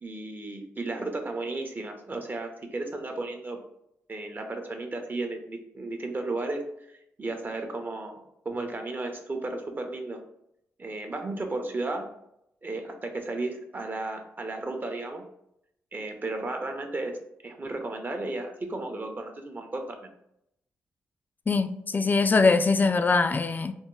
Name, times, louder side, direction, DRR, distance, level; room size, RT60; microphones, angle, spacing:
voice 1, 0.0-3.6 4.1-10.2 10.8-12.1 12.6-15.2 15.9-17.2 17.4-20.1, right 2 dB, 35° right, 0.7 m, -34 dB
voice 2, 21.5-23.7, left 4 dB, 35° left, 0.3 m, -22 dB
3.4 x 2.1 x 3.0 m
supercardioid pair, 45°, 6 cm